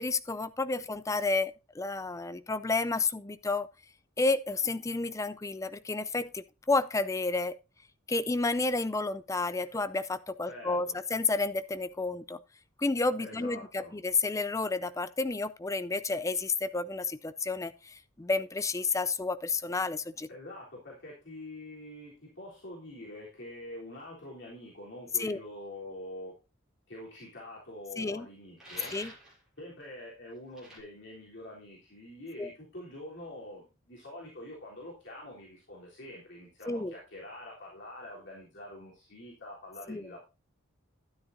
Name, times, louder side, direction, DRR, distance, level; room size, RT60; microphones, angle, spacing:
voice 1, 0.0-3.7 4.2-7.6 8.1-12.4 12.8-20.3 25.2-25.4 28.0-28.3 28.9-29.1 32.4-32.5 36.7-36.9 39.9-40.1, left 3 dB, 15° left, 0.4 m, -31 dB
voice 2, 10.5-11.0 13.2-13.9 20.3-26.3 26.9-28.9 29.6-40.2, left 1 dB, 60° left, 3.4 m, -45 dB
sound 1, 28.6-29.4 30.5-30.8, right 1 dB, ahead, 6.4 m, -46 dB
12.5 x 9.7 x 2.6 m
head